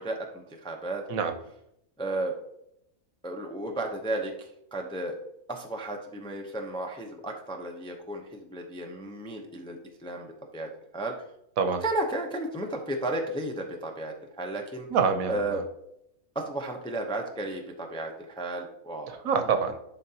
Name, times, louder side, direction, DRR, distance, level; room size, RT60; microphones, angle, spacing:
voice 1, 0.0-1.0 2.0-2.3 3.2-4.3 4.7-5.2 5.5-11.1 11.8-14.9 15.3-15.6 16.3-19.2, right 2 dB, 5° left, 2 dB, 0.4 m, -33 dB
voice 2, 14.9-15.6 19.1-19.8, right 6 dB, 75° right, 7 dB, 1.1 m, -26 dB
11.0 x 3.9 x 2.8 m, 0.77 s
omnidirectional pair, 1.5 m